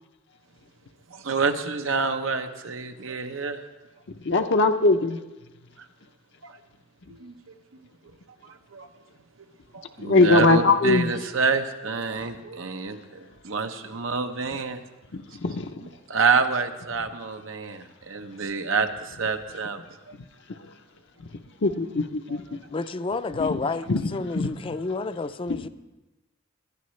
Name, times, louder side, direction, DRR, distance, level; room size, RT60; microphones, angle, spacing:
voice 1, 1.1-3.6 5.8-5.9 6.4-6.6 7.1-7.5 8.4-8.9 9.7-14.8 16.1-19.8 22.3-22.4, right 4 dB, 85° right, 7 dB, 0.9 m, -27 dB
voice 2, 4.2-5.2 10.0-11.1 15.1-15.8 21.6-22.4 23.4-23.6 23.9-24.5 25.5-25.6, left 3 dB, 65° left, 5 dB, 0.7 m, -21 dB
voice 3, 22.7-25.7, left 3 dB, 25° left, 12 dB, 0.4 m, -30 dB
20.0 x 11.5 x 3.2 m, 1.1 s
head